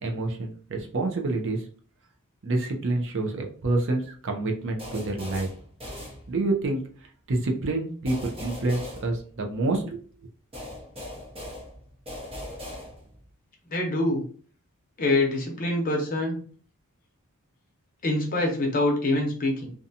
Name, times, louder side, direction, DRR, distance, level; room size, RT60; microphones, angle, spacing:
voice 1, 0.0-1.6 2.4-5.5 6.3-6.8 7.3-10.0, right 2 dB, 60° right, 3 dB, 0.5 m, -27 dB
sound 1, 4.8-6.7 8.0-9.8 10.5-13.3, left 1 dB, 25° right, 0.8 m, -40 dB
voice 2, 13.7-14.2 15.0-16.4 18.0-19.7, left 2 dB, 40° left, 0 dB, 0.7 m, -25 dB
2.6 x 2.2 x 2.7 m, 0.43 s
head